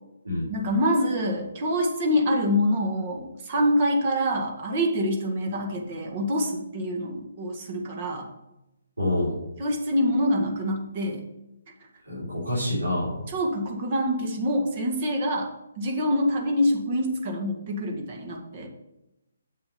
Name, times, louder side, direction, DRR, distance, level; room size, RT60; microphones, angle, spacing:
voice 1, 0.5-8.3 9.6-11.2 13.3-15.5 15.8-18.7, equal, 40° right, 2 dB, 1.9 m, -25 dB
voice 2, 9.0-9.4 12.1-13.2, left 1 dB, 85° right, -8 dB, 4.1 m, -27 dB
8.1 x 6.8 x 5.7 m, 0.92 s
figure-of-eight pair, 140°, 0 cm